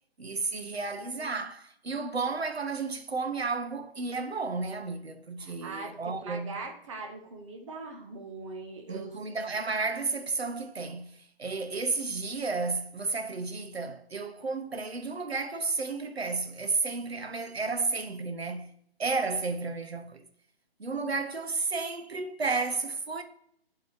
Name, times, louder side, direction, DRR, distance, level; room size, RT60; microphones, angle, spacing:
voice 1, 0.2-6.6 8.9-18.7 19.0-20.2 20.8-23.2, right 4 dB, 80° right, 1.1 m, -32 dB
voice 2, 5.4-9.2, right 3 dB, 30° right, 1.1 m, -41 dB
11.5 x 3.9 x 3.6 m
figure-of-eight pair, 140°, 31 cm